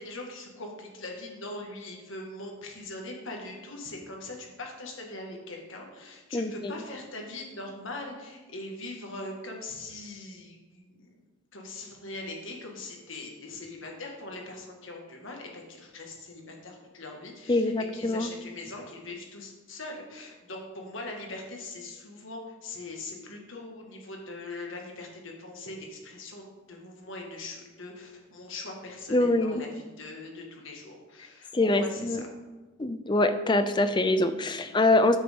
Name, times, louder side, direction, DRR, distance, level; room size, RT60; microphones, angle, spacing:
voice 1, 0.0-11.2 11.5-32.3, left 2 dB, 65° left, 1 dB, 1.7 m, -41 dB
voice 2, 6.3-6.7 17.5-18.3 29.1-29.6 31.5-32.3 32.8-35.2, left 2 dB, 20° left, 10 dB, 0.4 m, -24 dB
9.9 x 8.0 x 3.6 m, 1.3 s
head